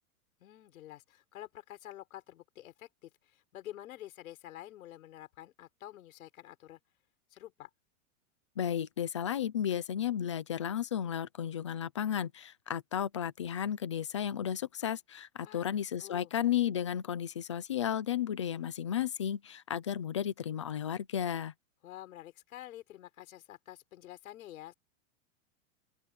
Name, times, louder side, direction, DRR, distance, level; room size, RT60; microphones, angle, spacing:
voice 1, 0.4-6.8 7.3-7.7 15.4-15.7 16.0-16.3 21.8-24.7, left 14 dB, 75° left, 5.8 m, -49 dB
voice 2, 8.6-21.5, left 9 dB, 25° left, 0.3 m, -33 dB
open air
supercardioid pair, 175°, 42 cm